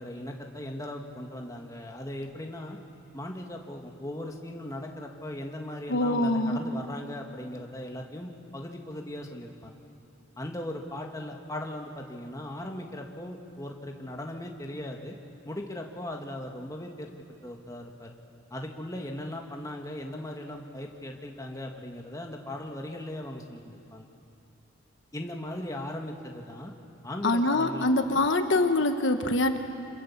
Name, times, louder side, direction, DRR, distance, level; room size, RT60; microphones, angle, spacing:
voice 1, 0.0-2.8 3.1-9.7 10.4-15.2 15.4-17.1 17.4-18.1 18.5-24.1 25.1-26.7 27.0-28.2, left 1 dB, 15° left, 1 dB, 1.9 m, -38 dB
voice 2, 5.9-6.6 27.2-29.6, left 2 dB, 65° left, 6 dB, 1.3 m, -24 dB
28.0 x 27.0 x 7.3 m, 2.8 s
head